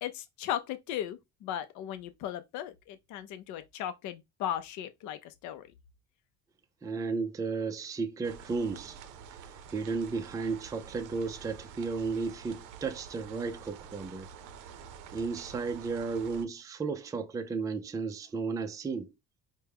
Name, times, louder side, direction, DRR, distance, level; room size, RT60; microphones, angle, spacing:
voice 1, 0.0-5.7, left 11 dB, 65° left, 0.5 m, -37 dB
voice 2, 6.8-9.0 9.5-14.3 15.1-19.1, right 4 dB, 10° right, 0.3 m, -34 dB
sound 1, 8.2-16.5, right 7 dB, 75° right, 0.6 m, -48 dB
4.5 x 2.1 x 3.4 m
cardioid pair, 125°, 32 cm